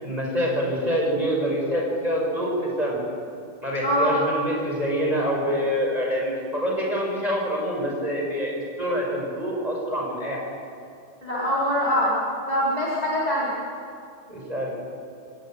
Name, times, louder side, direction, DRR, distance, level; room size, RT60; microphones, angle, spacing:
voice 1, 0.0-3.0 3.6-10.5 14.3-14.7, equal, 10° right, -2 dB, 6.1 m, -26 dB
voice 2, 3.8-4.2 11.2-12.1 12.5-13.5, equal, 10° left, -6 dB, 3.7 m, -23 dB
26.0 x 18.5 x 9.3 m, 2.4 s
omnidirectional pair, 5.6 m